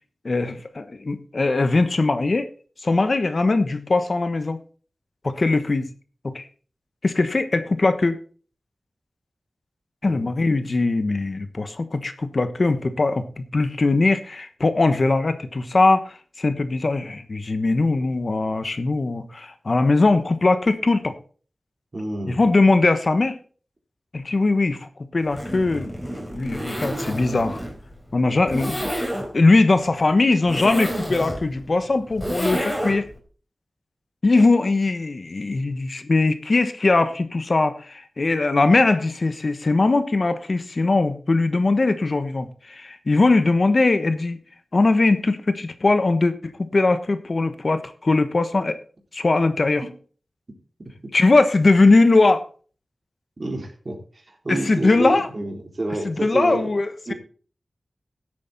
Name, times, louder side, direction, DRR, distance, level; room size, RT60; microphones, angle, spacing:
voice 1, 0.2-2.5 2.8-4.6 5.2-5.9 6.2-6.5 7.0-8.2 10.0-21.1 22.3-23.4 24.1-25.9 26.3-27.6 28.1-29.0 29.3-33.1 34.2-44.4 44.7-48.8 49.1-49.8 51.1-52.4 54.5-55.3 56.0-57.1, left 3 dB, 50° left, 10 dB, 1.2 m, -20 dB
voice 2, 10.0-10.4 21.9-22.4 53.4-54.0 54.3-56.7 57.1-57.2, right 2 dB, 45° right, 0 dB, 3.8 m, -28 dB
Zipper (clothing), 25.2-33.2, equal, 10° left, 3.8 m, -30 dB
15.0 x 8.3 x 4.1 m, 0.41 s
wide cardioid pair, 85°, 0 cm